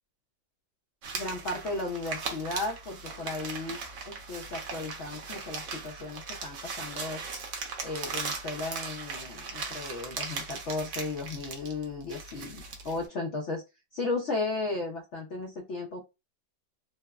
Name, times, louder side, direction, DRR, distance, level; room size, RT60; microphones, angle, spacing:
sound 1, 1.0-13.1, right 4 dB, 65° right, 0.7 m, -38 dB
voice 1, 1.1-3.8 4.1-7.2 7.8-13.6 13.9-16.0, left 3 dB, 85° left, 1 dB, 0.6 m, -35 dB
3.2 x 2.0 x 2.2 m, 0.25 s
omnidirectional pair, 1.9 m